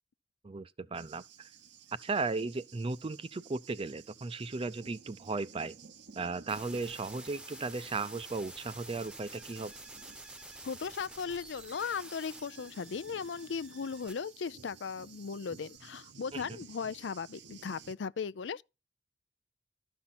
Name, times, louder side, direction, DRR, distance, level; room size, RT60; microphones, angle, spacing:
voice 1, 0.4-1.5 2.0-5.8 6.2-9.7 16.3-16.4, right 3 dB, 30° right, 0.5 m, -36 dB
Thunder, 0.9-17.9, right 6 dB, 70° right, 0.8 m, -55 dB
sound 1, 6.5-15.8, right 1 dB, 5° right, 0.8 m, -50 dB
voice 2, 10.6-18.6, left 6 dB, 90° left, 0.5 m, -37 dB
13.0 x 5.7 x 4.2 m
head